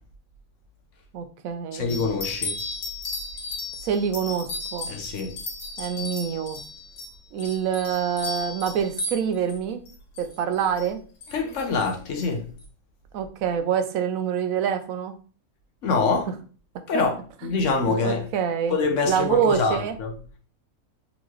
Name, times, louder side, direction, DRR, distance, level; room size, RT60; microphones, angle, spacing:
voice 1, 1.1-1.8 3.8-4.9 5.8-6.6 7.3-9.9 10.2-11.0 13.1-15.2 16.9-17.0 17.4-17.5 17.9-18.8 19.1-20.0, right 8 dB, 80° right, 1.0 m, -26 dB
voice 2, 1.7-2.6 4.9-5.3 11.3-12.5 15.8-16.3 16.9-17.2 17.4-18.3 18.7-20.1, left 4 dB, 65° left, 1.1 m, -25 dB
sound 1, 1.9-9.6 9.9-10.9 11.2-11.9 12.2-12.3 12.6-12.7, left 2 dB, 85° left, 1.7 m, -35 dB
3.8 x 3.8 x 3.0 m
omnidirectional pair, 1.5 m